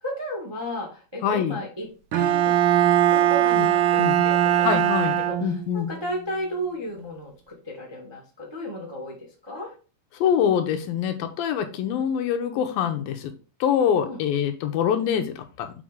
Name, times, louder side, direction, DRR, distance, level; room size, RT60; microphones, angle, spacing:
voice 1, 0.0-2.5 3.1-4.9 5.3-9.7 13.9-14.2, equal, 25° right, -2 dB, 0.5 m, -34 dB
voice 2, 1.2-1.6 3.6-3.7 4.0-4.2 4.6-5.9 10.2-13.3 13.6-15.7, left 8 dB, 80° left, 6 dB, 2.4 m, -24 dB
Bowed string instrument, 2.1-5.8, right 11 dB, 80° right, 2.5 m, -20 dB
7.4 x 4.6 x 3.6 m, 0.36 s
omnidirectional pair, 4.5 m